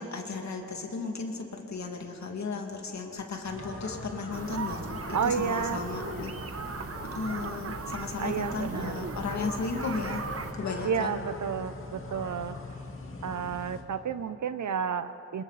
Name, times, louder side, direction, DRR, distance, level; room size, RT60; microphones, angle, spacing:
voice 1, 0.0-6.3 7.1-10.2 10.5-11.2, left 4 dB, 70° left, 2 dB, 2.5 m, -35 dB
sound 1, 3.4-13.8, left 3 dB, 45° left, 2.0 m, -41 dB
sound 2, 4.3-10.5, right 5 dB, 55° right, 1.2 m, -38 dB
voice 2, 5.1-5.8 8.2-9.1 10.8-12.6 13.2-15.4, right 7 dB, 80° right, 12 dB, 0.9 m, -31 dB
29.5 x 26.5 x 4.2 m, 3.0 s
wide cardioid pair, 135°, 29 cm